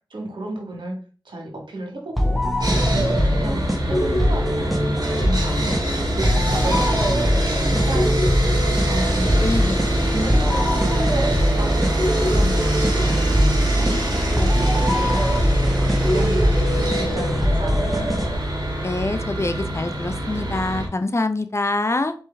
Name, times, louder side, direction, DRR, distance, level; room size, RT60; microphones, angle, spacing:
voice 1, 0.1-0.9 1.2-2.4 2.7-4.7 5.1-9.5 10.0-13.9 14.3-15.5 15.9-18.1, right 1 dB, 80° right, 0 dB, 1.6 m, -32 dB
sound 1, 2.2-18.7, left 1 dB, ahead, 1.1 m, -23 dB
Sawing, 2.6-20.9, right 1 dB, 55° right, 1.6 m, -23 dB
voice 2, 9.4-10.1 18.8-22.1, left 2 dB, 35° left, 8 dB, 0.5 m, -25 dB
4.5 x 3.2 x 3.4 m, 0.39 s
cardioid pair, 40°, 8 cm